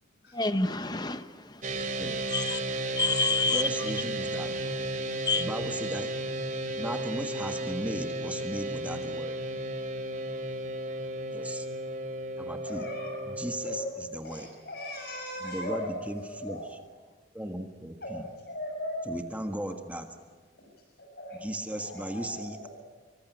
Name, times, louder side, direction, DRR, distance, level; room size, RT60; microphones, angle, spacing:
voice 1, 0.3-1.9 2.3-2.6 2.9-3.9 5.2-5.5, left 3 dB, 20° left, 10 dB, 1.0 m, -29 dB
sound 1, 1.6-13.8, right 1 dB, 40° right, 2.8 m, -34 dB
voice 2, 3.5-4.5 5.3-6.1 6.8-9.4 11.3-11.7 12.4-12.9 13.3-14.5 15.4-16.8 17.3-18.3 19.0-20.1 21.4-22.7, right 1 dB, 5° right, 5 dB, 1.5 m, -36 dB
voice 3, 12.7-13.2 13.6-13.8 14.2-16.7 18.0-19.1 21.0-22.7, left 1 dB, 55° left, 0 dB, 6.4 m, -38 dB
26.5 x 24.0 x 9.3 m, 1.5 s
head